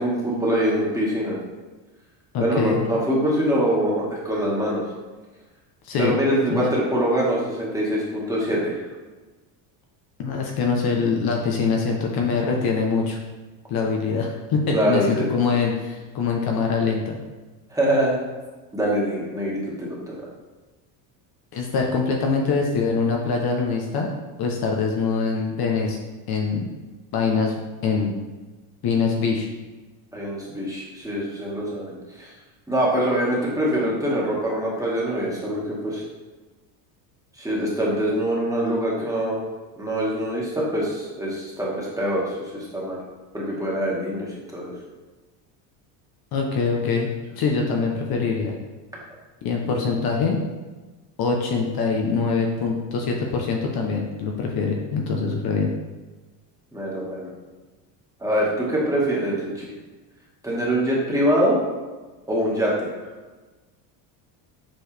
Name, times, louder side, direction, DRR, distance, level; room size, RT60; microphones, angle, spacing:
voice 1, 0.0-1.4 2.4-4.8 6.0-8.8 14.7-15.3 17.7-18.2 18.7-20.2 30.1-32.3 32.7-36.0 37.4-39.4 39.8-43.0 43.3-44.7 49.7-49.8 56.7-57.3 58.2-59.7 60.4-61.6 62.3-62.9, equal, 5° right, -5 dB, 1.8 m, -24 dB
voice 2, 2.3-2.8 5.8-6.1 6.5-6.6 10.2-13.2 13.7-17.2 21.5-24.1 24.4-26.0 26.3-26.7 27.1-27.6 27.8-28.1 28.8-29.5 46.3-47.1 47.4-48.5 49.4-50.4 51.2-55.7, left 5 dB, 50° left, 1 dB, 1.0 m, -23 dB
7.4 x 4.6 x 3.4 m, 1.2 s
cardioid pair, 125°, 47 cm